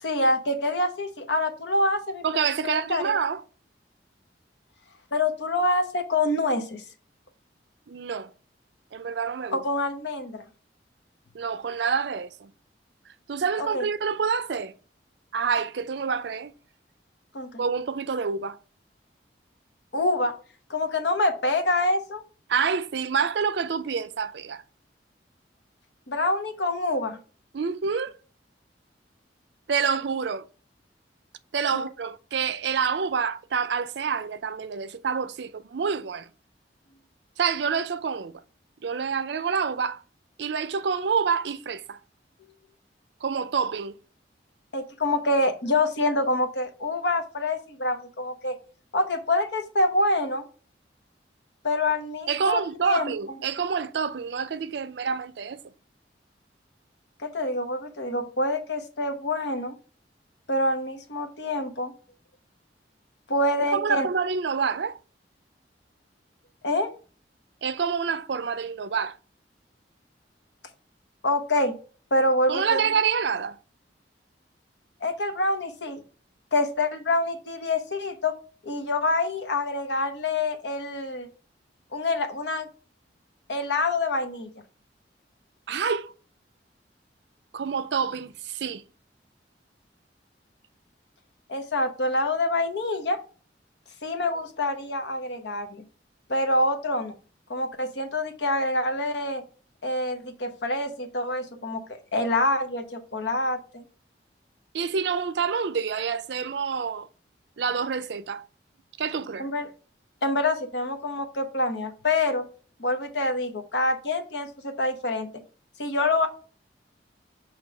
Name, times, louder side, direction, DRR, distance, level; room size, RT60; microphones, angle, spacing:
voice 1, 0.0-2.2 2.6-3.0 5.1-6.8 9.5-10.4 13.6-13.8 17.3-17.6 19.9-20.3 20.7-22.2 26.1-27.2 31.7-31.9 44.7-48.5 48.9-50.4 51.6-53.1 57.2-59.7 60.5-61.9 63.3-64.1 66.6-66.9 71.2-71.7 72.1-72.8 75.0-76.0 76.5-78.3 78.6-81.3 81.9-82.7 83.5-84.5 91.5-93.2 94.0-95.8 96.3-97.1 97.5-99.4 99.8-103.8 109.4-109.7 110.2-112.5 112.8-115.3 115.8-116.3, left 2 dB, 65° left, 0.9 m, -26 dB
voice 2, 2.2-3.4 7.9-8.3 8.9-9.6 11.3-12.5 13.3-14.7 15.3-16.5 17.6-18.6 22.5-24.6 27.5-28.1 29.7-30.5 31.5-36.3 37.4-38.4 38.8-40.0 40.4-42.0 43.2-43.9 52.3-55.6 63.7-65.0 67.6-69.2 72.5-73.6 85.7-86.1 87.5-88.8 104.7-107.1 107.6-108.4 109.0-109.5, right 6 dB, 65° right, 0.5 m, -27 dB
6.3 x 2.9 x 5.0 m
head